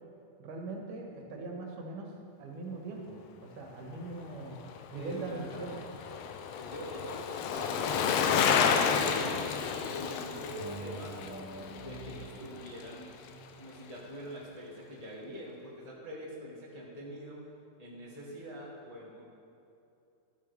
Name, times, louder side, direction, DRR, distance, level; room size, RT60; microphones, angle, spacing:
voice 1, 0.4-2.1 2.4-4.6 4.9-5.8, right 3 dB, 80° right, 0 dB, 2.9 m, -41 dB
Bicycle, 4.6-13.0 13.3-13.4, left 6 dB, 80° left, 1.5 m, -31 dB
voice 2, 4.9-5.6 6.6-11.3 11.8-13.1 13.6-17.4 17.8-19.2, equal, 25° left, -6 dB, 0.9 m, -44 dB
sound 1, 7.5-9.8 10.5-13.9, right 2 dB, 40° right, 2.3 m, -47 dB
13.5 x 12.5 x 3.4 m, 2.6 s
omnidirectional pair, 3.6 m